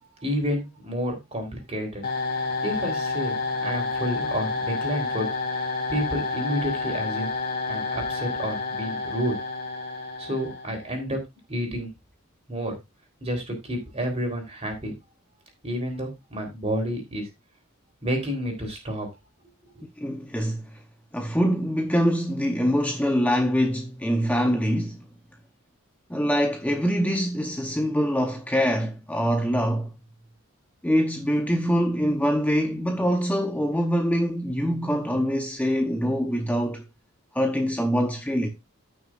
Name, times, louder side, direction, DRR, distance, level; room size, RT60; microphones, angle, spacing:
voice 1, 0.2-2.0 2.6-3.4 3.6-5.3 5.9-7.3 7.7-9.4 10.2-11.2 11.5-11.9 12.5-12.7 13.2-14.9 15.6-17.3 18.0-19.1, equal, 30° right, 3.6 m, -29 dB
sound 1, 2.0-10.9, left 3 dB, 50° left, 2.4 m, -29 dB
voice 2, 20.0-20.6 21.1-25.0 26.1-29.9 30.8-36.8 37.3-38.5, equal, 5° left, 0.8 m, -24 dB
14.5 x 6.2 x 2.4 m
head